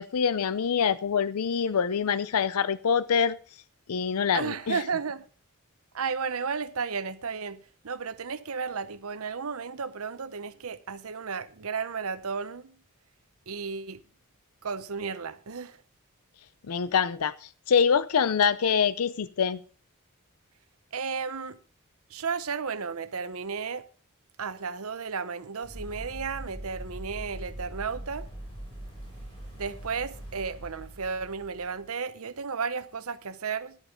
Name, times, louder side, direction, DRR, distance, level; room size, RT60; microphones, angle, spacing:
voice 1, 0.0-3.4 3.9-4.8 16.7-19.6, left 6 dB, 75° left, 0.5 m, -25 dB
voice 2, 4.3-5.2 5.9-12.8 13.5-14.0 14.6-15.8 20.9-21.6 22.1-23.9 24.4-28.3 29.6-33.8, right 5 dB, 70° right, 0.8 m, -33 dB
sound 1, 25.6-31.8, right 1 dB, 25° left, 5.7 m, -42 dB
14.0 x 11.5 x 3.7 m
head